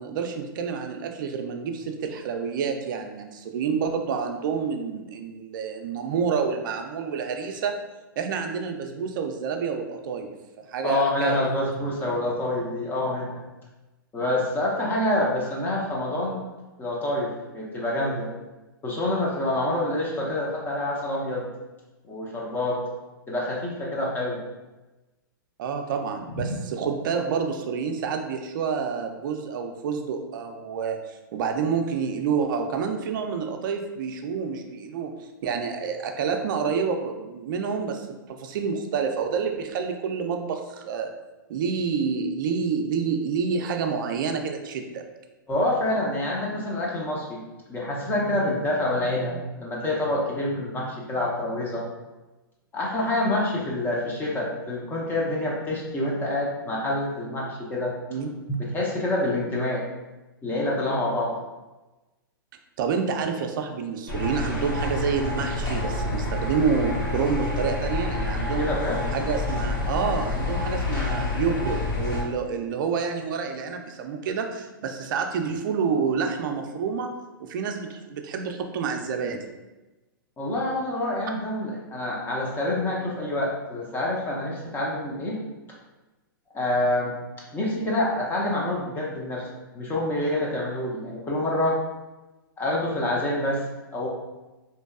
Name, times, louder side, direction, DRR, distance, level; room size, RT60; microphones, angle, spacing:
voice 1, 0.0-7.8 8.2-11.5 25.6-35.2 35.4-41.1 41.5-45.0 58.1-58.3 62.8-68.7 69.1-77.1 77.4-79.5, right 6 dB, 60° right, 5 dB, 0.4 m, -28 dB
voice 2, 10.8-13.4 14.1-16.4 16.8-18.3 18.8-21.5 22.1-22.8 23.3-24.4 26.4-26.5 45.5-47.4 47.7-51.8 52.7-57.9 58.5-59.8 60.4-61.3 68.5-69.0 80.4-85.4 86.5-87.2 87.5-89.5 89.7-91.8 92.6-93.6 93.9-94.1, left 1 dB, 15° left, -3 dB, 0.5 m, -27 dB
sound 1, 64.1-72.2, left 2 dB, 70° left, 1.4 m, -28 dB
2.6 x 2.2 x 2.3 m, 1.1 s
hypercardioid pair, 125°, 12 cm